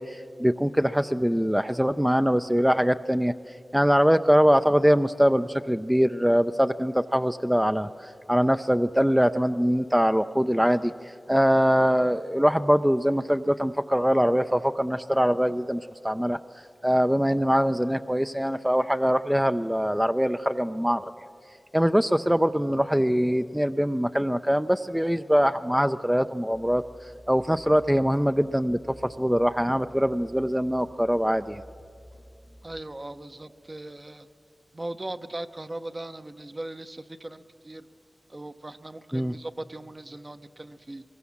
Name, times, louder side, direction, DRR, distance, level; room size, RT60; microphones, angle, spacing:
voice 1, 0.0-3.3 3.7-16.4 16.8-21.1 21.7-26.8 27.3-31.6 39.1-39.4, equal, 5° right, 9 dB, 0.5 m, -23 dB
sound 1, 26.5-33.3, equal, 70° right, 5.3 m, -51 dB
voice 2, 32.6-34.3 34.7-37.9 38.3-41.0, right 1 dB, 40° right, 9 dB, 0.9 m, -39 dB
23.0 x 21.5 x 7.2 m, 2.5 s
cardioid pair, 40°, 0 cm